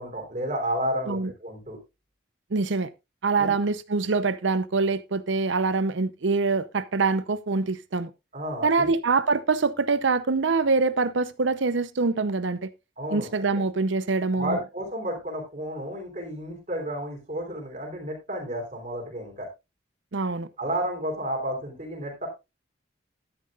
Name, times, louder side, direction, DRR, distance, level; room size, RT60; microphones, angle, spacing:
voice 1, 0.0-1.8 3.4-3.5 8.3-8.9 13.0-13.6 14.4-19.5 20.6-22.3, right 1 dB, 40° right, 3.4 m, -32 dB
voice 2, 2.5-2.9 3.2-8.1 8.6-12.7 13.1-14.6 20.1-20.5, right 4 dB, 70° right, 0.7 m, -24 dB
12.5 x 10.5 x 2.4 m
head